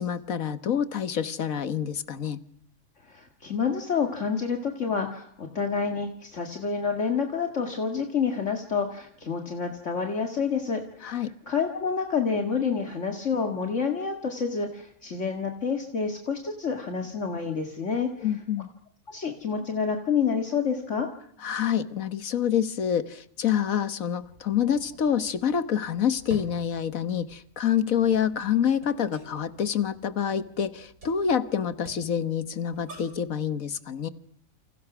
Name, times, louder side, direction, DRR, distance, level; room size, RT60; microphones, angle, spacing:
voice 1, 0.0-2.4 11.0-11.3 18.2-18.7 21.4-34.1, left 8 dB, 75° left, 12 dB, 1.7 m, -27 dB
voice 2, 3.0-18.3 19.1-21.1, left 5 dB, 60° left, 4 dB, 2.3 m, -28 dB
sound 1, 24.2-33.3, right 1 dB, 80° right, 6.1 m, -49 dB
29.0 x 27.5 x 6.1 m, 0.65 s
omnidirectional pair, 1.4 m